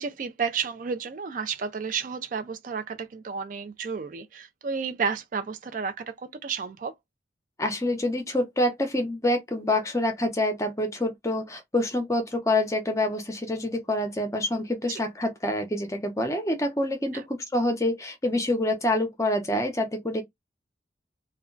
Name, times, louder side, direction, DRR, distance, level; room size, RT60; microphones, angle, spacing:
voice 1, 0.0-6.9 17.1-17.3, right 5 dB, 45° right, 0.3 m, -32 dB
voice 2, 7.6-20.2, left 1 dB, 15° left, 0.6 m, -26 dB
2.2 x 2.2 x 3.7 m
head